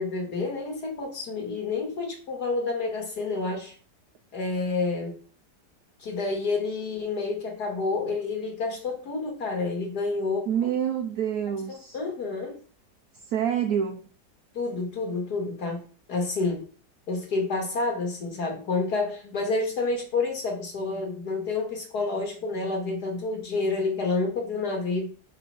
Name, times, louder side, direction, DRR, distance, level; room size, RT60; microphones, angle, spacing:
voice 1, 0.0-3.7 4.3-5.2 6.0-10.7 11.7-12.6 14.5-15.8 16.1-16.7 17.1-25.1, left 3 dB, 70° left, 2.6 m, -29 dB
voice 2, 10.5-12.0 13.3-14.0, right 9 dB, 70° right, 1.1 m, -27 dB
5.7 x 5.0 x 5.9 m
omnidirectional pair, 1.8 m